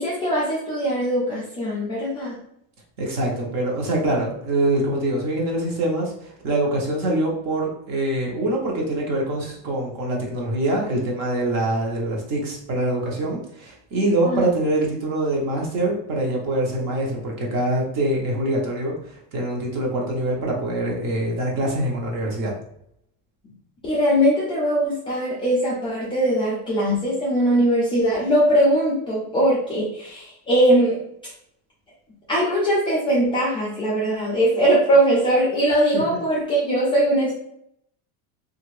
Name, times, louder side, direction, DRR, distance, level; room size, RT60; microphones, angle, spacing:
voice 1, 0.0-2.4 14.2-14.5 23.8-31.0 32.3-37.3, right 1 dB, 15° left, -8 dB, 0.3 m, -20 dB
voice 2, 3.0-22.5, right 1 dB, 40° right, -1 dB, 0.9 m, -24 dB
2.7 x 2.5 x 3.1 m, 0.73 s
cardioid pair, 160°, 43 cm